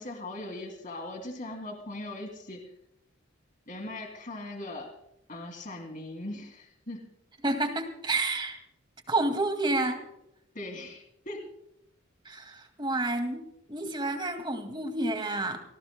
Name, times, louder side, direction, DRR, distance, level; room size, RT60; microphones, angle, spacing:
voice 1, 0.0-2.6 3.7-4.9 5.3-7.1 10.5-11.4, left 2 dB, 40° left, 3 dB, 2.7 m, -39 dB
voice 2, 7.4-8.6 9.1-10.0 12.2-15.6, right 2 dB, 25° right, 6 dB, 2.1 m, -30 dB
29.0 x 18.0 x 2.2 m, 0.81 s
head